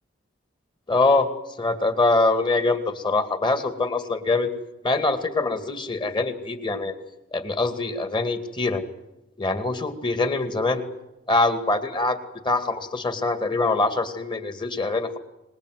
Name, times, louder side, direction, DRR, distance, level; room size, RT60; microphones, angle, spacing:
voice 1, 0.9-1.3 1.6-4.5 4.8-6.9 7.3-8.8 9.4-10.8 11.3-12.2 12.4-15.2, left 3 dB, 25° left, 9 dB, 2.4 m, -23 dB
25.5 x 21.0 x 9.4 m, 0.92 s
head